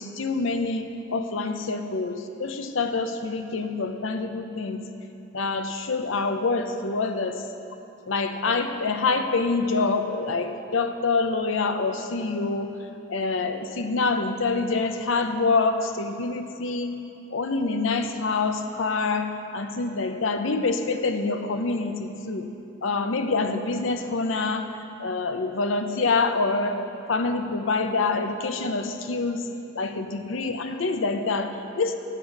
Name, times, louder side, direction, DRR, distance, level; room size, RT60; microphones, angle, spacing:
voice 1, 0.0-4.8 5.3-7.4 8.1-12.7 13.1-16.9 17.3-22.5 22.8-24.7 25.0-26.7 27.1-29.4 29.7-32.0, left 3 dB, 85° left, 7 dB, 0.7 m, -26 dB
8.3 x 7.5 x 6.6 m, 2.7 s
head